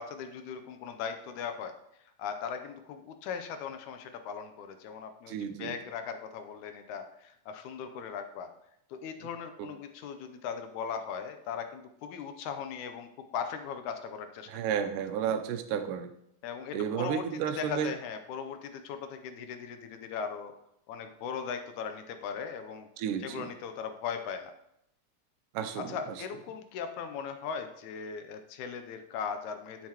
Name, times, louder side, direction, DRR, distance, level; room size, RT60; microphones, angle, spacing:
voice 1, 0.0-1.7 2.2-8.5 8.9-14.5 16.4-17.2 17.6-20.5 20.9-22.9 23.2-24.5 25.9-29.9, left 6 dB, 80° left, 7 dB, 2.0 m, -38 dB
voice 2, 5.3-5.7 9.6-9.7 14.5-16.1 16.7-17.9 23.0-23.5 25.5-26.2, right 8 dB, 90° right, 8 dB, 2.3 m, -32 dB
9.4 x 6.6 x 2.9 m, 0.77 s
omnidirectional pair, 3.6 m